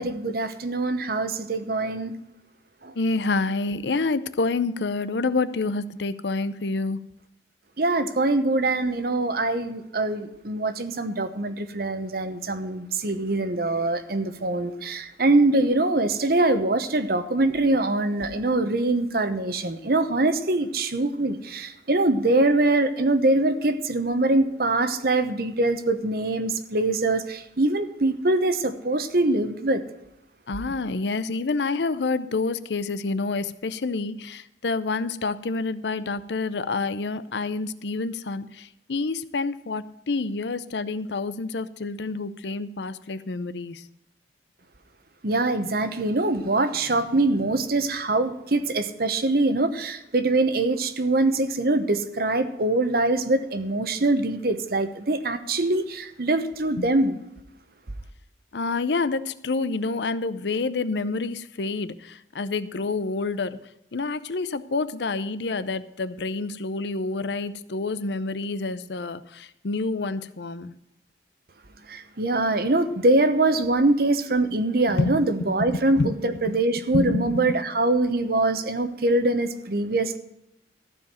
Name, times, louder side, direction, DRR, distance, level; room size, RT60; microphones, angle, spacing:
voice 1, 0.0-2.1 2.8-2.9 7.8-29.8 45.2-57.2 71.9-80.2, right 2 dB, 55° right, 1.0 m, -23 dB
voice 2, 3.0-7.0 30.5-43.8 56.8-56.9 58.5-63.6 63.9-70.7 74.9-76.6 76.9-77.6, left 3 dB, 75° left, 0.6 m, -28 dB
14.5 x 4.9 x 9.0 m
head